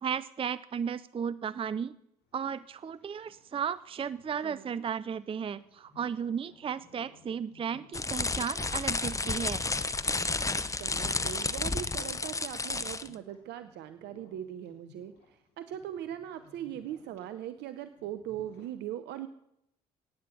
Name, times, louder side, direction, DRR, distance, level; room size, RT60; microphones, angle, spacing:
voice 1, 0.0-1.9 2.3-9.6, right 7 dB, 30° right, 16 dB, 0.5 m, -34 dB
sound 1, 2.2-18.7, left 4 dB, 60° left, 3.7 m, -61 dB
voice 2, 4.4-4.8 10.8-19.3, right 11 dB, 65° right, 11 dB, 0.7 m, -40 dB
sound 2, 7.9-13.1, left 3 dB, 15° left, 0.8 m, -31 dB
15.5 x 9.5 x 7.0 m, 0.81 s
hypercardioid pair, 50°, 19 cm